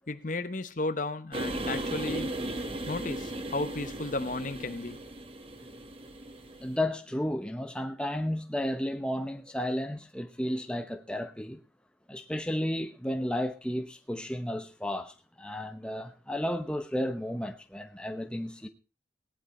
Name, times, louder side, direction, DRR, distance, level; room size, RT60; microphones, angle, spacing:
voice 1, 0.1-2.3 2.9-5.0, left 2 dB, 45° left, 0.9 m, -34 dB
sound 1, 1.3-6.7, right 1 dB, 30° right, 1.5 m, -36 dB
voice 2, 6.6-11.6 12.1-18.7, left 1 dB, 5° left, 0.9 m, -33 dB
18.0 x 10.5 x 4.3 m
head